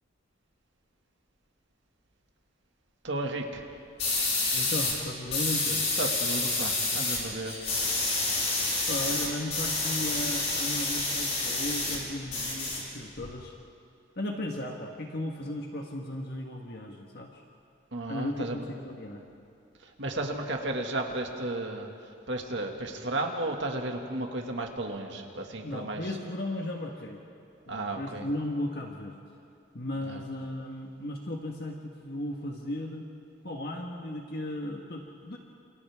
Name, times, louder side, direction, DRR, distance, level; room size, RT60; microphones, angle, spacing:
voice 1, 3.0-3.7 6.0-7.6 17.9-18.6 19.8-21.9 22.3-26.0 27.7-28.3 30.0-30.2, right 2 dB, 65° right, 2 dB, 2.1 m, -33 dB
sound 1, 4.0-5.0 5.3-7.2 7.5-12.0 12.3-13.3, left 3 dB, 35° left, 5.5 m, -28 dB
voice 2, 4.5-5.9 8.9-13.6 14.2-17.4 18.1-19.2 25.6-27.2 27.7-29.2 29.7-33.1 33.4-35.4, left 1 dB, 55° left, 0 dB, 1.5 m, -36 dB
28.5 x 28.5 x 3.6 m, 2.4 s
head